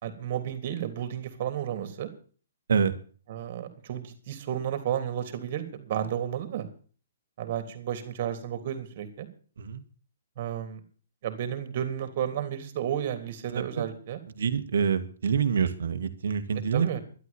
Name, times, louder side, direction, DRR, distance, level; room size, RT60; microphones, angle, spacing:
voice 1, 0.0-2.1 3.3-6.7 7.4-9.3 10.4-10.8 11.2-14.2 16.7-17.0, right 10 dB, 45° right, 9 dB, 3.4 m, -32 dB
voice 2, 14.4-16.9, right 6 dB, 65° right, 9 dB, 2.1 m, -26 dB
12.5 x 11.5 x 7.2 m, 0.42 s
figure-of-eight pair, 125°, 0 cm